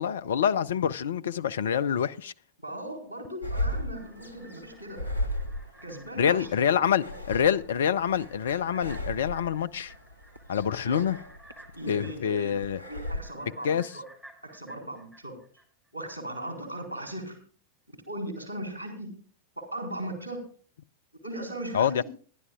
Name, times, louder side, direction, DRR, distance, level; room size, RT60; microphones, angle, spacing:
voice 1, 0.0-2.3 6.2-9.9 10.5-11.2 11.9-12.8 13.6-13.9 21.7-22.0, left 8 dB, 65° left, 0.5 m, -26 dB
voice 2, 2.6-5.1 5.8-6.8 7.0-7.2 10.8-11.0 11.8-12.5 12.8-14.0 14.4-15.4 15.9-17.4 18.1-19.1 19.6-20.4 21.2-21.9, right 1 dB, 85° left, 4.2 m, -38 dB
sound 1, 3.4-13.2, left 1 dB, 90° right, 0.8 m, -36 dB
sound 2, 3.6-16.1 16.5-16.6, right 1 dB, 5° right, 3.5 m, -56 dB
25.5 x 11.0 x 2.3 m
figure-of-eight pair, 90°, 0 cm